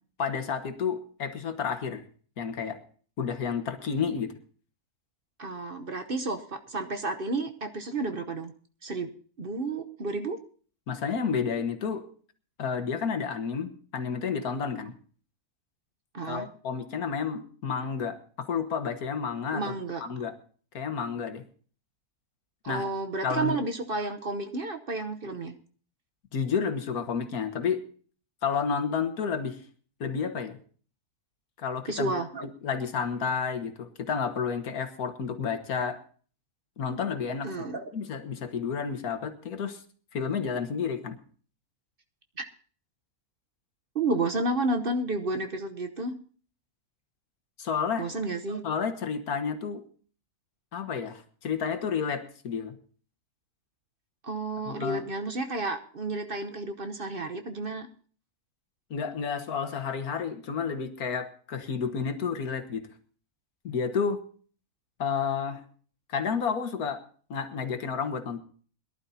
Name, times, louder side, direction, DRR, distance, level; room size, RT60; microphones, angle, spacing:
voice 1, 0.2-2.0 2.4-2.8 3.2-4.3 10.9-12.0 12.6-14.9 16.2-19.6 20.0-20.3 20.7-21.4 22.7-22.8 23.2-23.6 26.3-27.8 28.4-29.6 30.0-30.6 31.6-32.1 32.4-36.0 36.8-37.5 37.9-39.8 40.1-41.2 47.6-48.1 48.6-49.8 50.7-52.7 54.6-55.0 58.9-62.9 63.6-64.2 65.0-65.6 66.1-67.0 67.3-68.4, left 6 dB, 80° left, 8 dB, 1.8 m, -30 dB
voice 2, 5.4-8.5 8.8-9.1 9.4-10.4 16.1-16.5 19.5-20.0 22.6-25.5 31.9-32.4 37.4-37.9 43.9-46.1 48.0-48.6 54.2-57.9, right 2 dB, 45° right, 7 dB, 1.0 m, -31 dB
22.5 x 11.5 x 2.8 m, 0.42 s
omnidirectional pair, 1.6 m